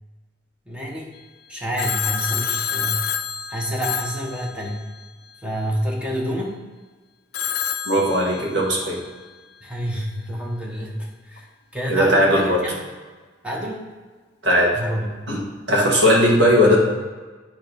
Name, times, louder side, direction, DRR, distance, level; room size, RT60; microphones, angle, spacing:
voice 1, 0.7-1.2 1.5-3.0 3.5-4.8 5.4-6.6 9.6-11.5 11.7-12.8 13.4-13.8 14.7-15.3, equal, 5° right, -2 dB, 0.9 m, -28 dB
Telephone, 1.8-5.1 7.3-8.9, left 8 dB, 55° left, 0.4 m, -28 dB
voice 2, 7.8-9.0 11.9-12.6 14.4-14.7 15.3-16.8, equal, 65° right, -2 dB, 1.5 m, -18 dB
8.6 x 3.0 x 5.2 m, 1.4 s
head